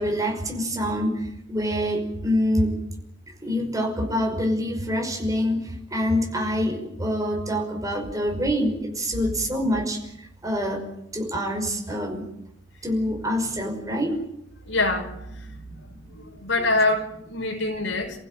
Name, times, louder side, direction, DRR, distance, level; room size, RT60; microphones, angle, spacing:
voice 1, 0.0-2.8 3.4-10.8 11.1-12.2 12.8-14.2 15.5-16.0, equal, 20° right, 2 dB, 5.5 m, -26 dB
voice 2, 14.6-15.3 16.1-18.2, left 2 dB, 85° left, 3 dB, 5.9 m, -25 dB
29.0 x 15.5 x 9.2 m, 0.83 s
head